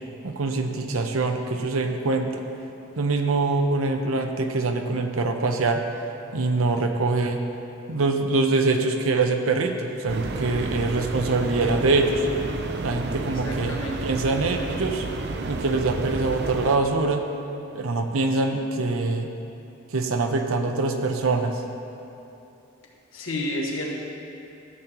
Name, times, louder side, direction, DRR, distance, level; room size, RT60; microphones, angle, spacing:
voice 1, 0.2-2.3 3.0-5.8 6.3-7.4 7.9-12.3 12.8-15.1 15.5-17.2 17.7-19.3 19.9-21.6, right 3 dB, 85° right, 5 dB, 0.7 m, -24 dB
sound 1, 10.1-16.8, right 2 dB, 50° right, 0.5 m, -31 dB
voice 2, 13.2-14.0 23.1-24.0, left 1 dB, 75° left, -2 dB, 1.5 m, -30 dB
13.5 x 8.1 x 3.0 m, 2.9 s
head